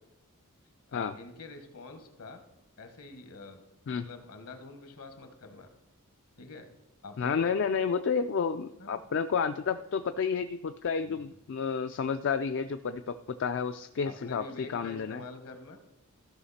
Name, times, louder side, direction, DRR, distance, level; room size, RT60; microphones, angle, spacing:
voice 1, 0.9-2.4 2.8-3.6 3.9-5.7 6.4-6.7 7.0-7.6 8.8-9.0 11.0-11.4 14.0-15.8, left 3 dB, 75° left, 6 dB, 1.5 m, -46 dB
voice 2, 7.2-15.2, left 6 dB, 55° left, 9 dB, 0.4 m, -31 dB
14.5 x 5.8 x 4.2 m, 0.92 s
head